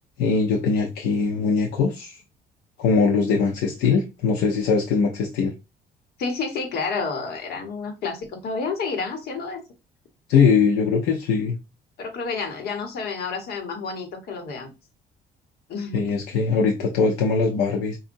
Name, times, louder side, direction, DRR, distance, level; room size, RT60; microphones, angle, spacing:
voice 1, 0.2-2.2 2.8-5.5 10.3-11.6 15.9-18.0, left 5 dB, 90° left, 0.8 m, -21 dB
voice 2, 6.2-9.6 12.0-14.7 15.7-16.2, left 4 dB, 70° left, 1.4 m, -30 dB
5.0 x 2.6 x 2.6 m
cardioid pair, 110°, 17 cm